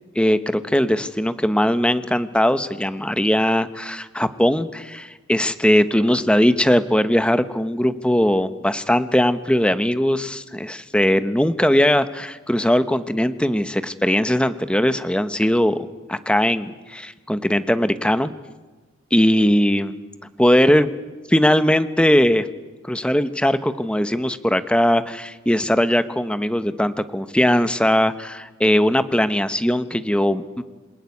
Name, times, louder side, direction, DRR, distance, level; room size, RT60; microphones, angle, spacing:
voice 1, 0.1-18.3 19.1-19.9 20.4-20.9 21.3-22.5 22.8-30.6, equal, 5° left, 11 dB, 0.9 m, -19 dB
27.5 x 19.0 x 9.6 m, 1.3 s
head